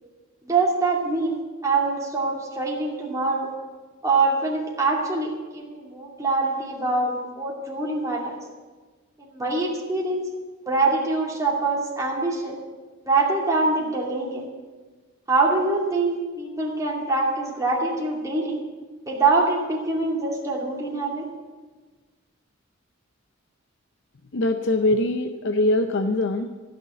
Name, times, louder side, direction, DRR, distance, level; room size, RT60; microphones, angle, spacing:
voice 1, 0.4-3.5 4.0-8.4 9.2-10.3 10.7-12.6 13.0-14.4 15.3-18.6 19.1-21.3, right 3 dB, 15° right, -3 dB, 2.5 m, -24 dB
voice 2, 24.3-26.5, left 2 dB, 65° left, 7 dB, 0.7 m, -22 dB
15.0 x 6.7 x 8.3 m, 1.3 s
head